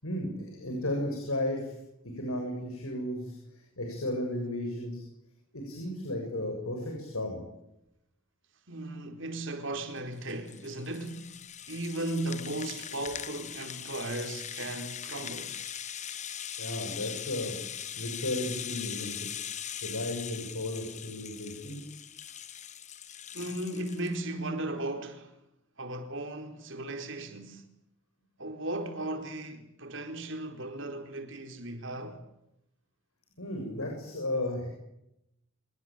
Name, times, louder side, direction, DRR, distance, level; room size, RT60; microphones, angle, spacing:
voice 1, 0.0-1.8 2.0-5.0 5.5-7.4 16.6-17.6 17.9-19.3 19.8-21.9 33.4-34.7, left 1 dB, 80° left, 7.1 m, -34 dB
voice 2, 8.7-11.4 11.7-15.5 23.3-25.3 25.8-27.6 28.4-32.2, right 1 dB, 55° right, 4.2 m, -36 dB
Rattle (instrument), 10.0-24.2, left 9 dB, 30° left, 1.2 m, -41 dB
27.5 x 19.0 x 9.1 m
head